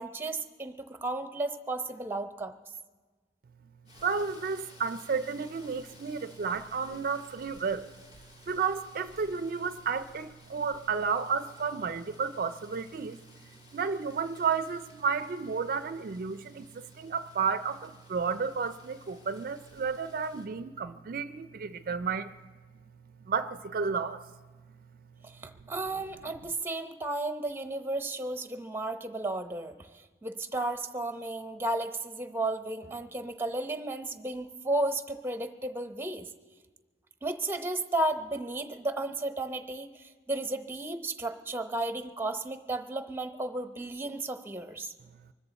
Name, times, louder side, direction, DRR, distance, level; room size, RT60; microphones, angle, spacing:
voice 1, 0.0-2.5 25.2-29.9 30.2-36.3 37.2-44.9, right 2 dB, 15° right, 8 dB, 0.7 m, -33 dB
Rain, 3.9-20.5, left 2 dB, 40° left, 2.6 m, -57 dB
voice 2, 4.0-7.9 8.5-13.2 13.7-22.3 23.3-24.2, right 5 dB, 55° right, 12 dB, 0.4 m, -32 dB
24.5 x 13.5 x 4.1 m, 1.3 s
head